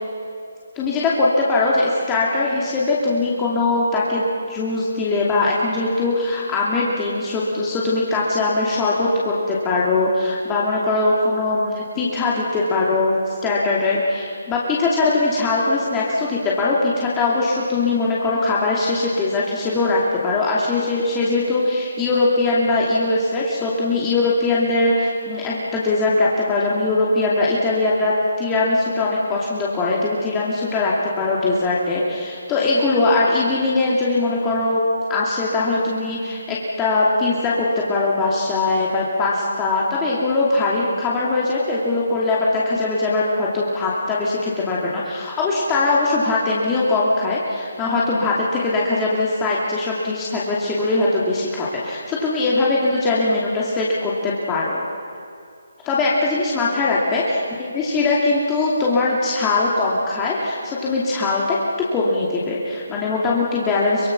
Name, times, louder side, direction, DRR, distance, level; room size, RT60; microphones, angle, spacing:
voice 1, 0.7-34.8 35.1-54.8 55.8-57.2 57.6-61.6 61.9-64.1, left 2 dB, 15° left, -5 dB, 2.7 m, -21 dB
24.0 x 21.5 x 6.1 m, 2.4 s
figure-of-eight pair, 150°, 0 cm